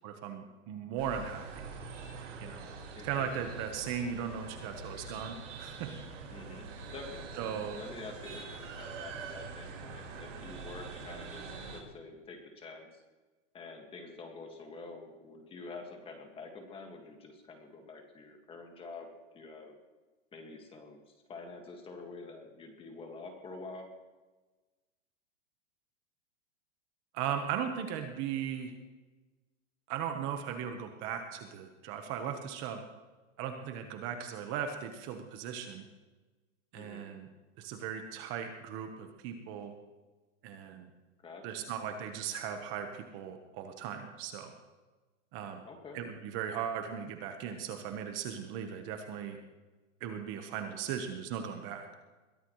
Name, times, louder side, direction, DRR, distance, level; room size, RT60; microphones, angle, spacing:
voice 1, 0.0-1.6 2.4-2.7 3.0-5.9 7.4-7.8 27.1-28.7 29.9-32.8 33.4-35.9 36.7-37.3 37.6-39.7 40.4-40.9 41.4-44.5 45.3-45.6 45.9-49.4 50.0-51.9, right 8 dB, 30° right, 5 dB, 1.2 m, -37 dB
sound 1, 1.0-11.8, right 4 dB, 75° right, 4.7 m, -44 dB
voice 2, 2.9-3.6 6.3-13.0 13.5-19.7 20.3-23.9 36.7-37.1 41.2-41.7 45.6-46.0, left 3 dB, 15° left, 3 dB, 1.9 m, -47 dB
22.0 x 15.5 x 3.2 m, 1.2 s
supercardioid pair, 155°, 37 cm